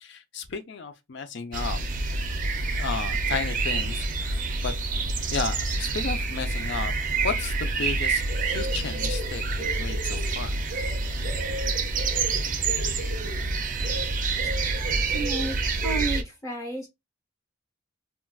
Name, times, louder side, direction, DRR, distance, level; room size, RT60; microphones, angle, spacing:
voice 1, 0.0-1.8 2.4-4.7 5.3-6.9 7.2-10.6, left 5 dB, 60° left, 0.5 m, -33 dB
sound 1, 1.5-16.2, right 3 dB, 40° right, 0.5 m, -27 dB
voice 2, 14.6-16.9, right 3 dB, 15° left, 0.8 m, -33 dB
3.7 x 2.2 x 2.3 m
head